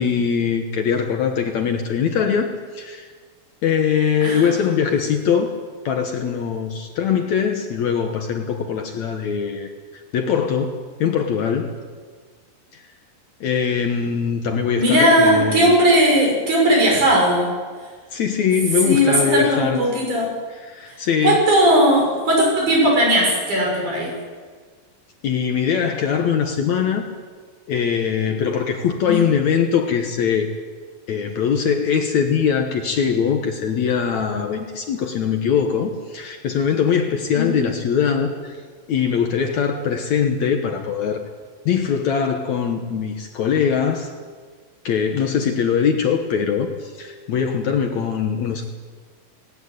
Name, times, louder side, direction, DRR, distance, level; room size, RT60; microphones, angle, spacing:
voice 1, 0.0-3.1 3.6-5.6 5.9-9.7 10.1-11.7 12.7-12.8 13.4-15.8 18.1-19.8 20.5-21.4 25.2-27.1 27.7-30.5 31.1-38.5 38.9-41.2 41.7-44.1 44.8-48.6, left 7 dB, 60° left, 4 dB, 2.3 m, -22 dB
voice 2, 4.2-4.5 14.8-17.5 18.9-20.3 21.2-24.1 29.0-29.2 37.3-37.6, equal, 55° right, -1 dB, 7.8 m, -17 dB
19.0 x 17.0 x 9.6 m, 1.5 s
omnidirectional pair, 4.1 m